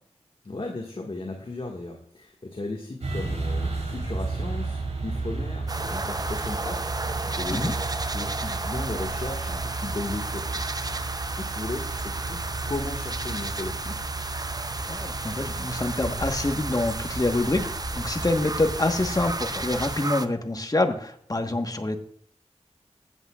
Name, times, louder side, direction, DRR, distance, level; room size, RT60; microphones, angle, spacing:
voice 1, 0.4-7.8 8.1-10.7 10.9-14.0, left 2 dB, 50° left, 0 dB, 1.8 m, -36 dB
sound 1, 3.0-20.0, right 3 dB, 75° right, 3.7 m, -33 dB
sound 2, 5.7-20.3, right 2 dB, 35° right, 0.7 m, -33 dB
voice 2, 14.9-17.7 17.9-22.0, left 2 dB, 30° left, 6 dB, 1.3 m, -26 dB
16.0 x 8.5 x 2.4 m, 0.65 s
wide cardioid pair, 50°, 12 cm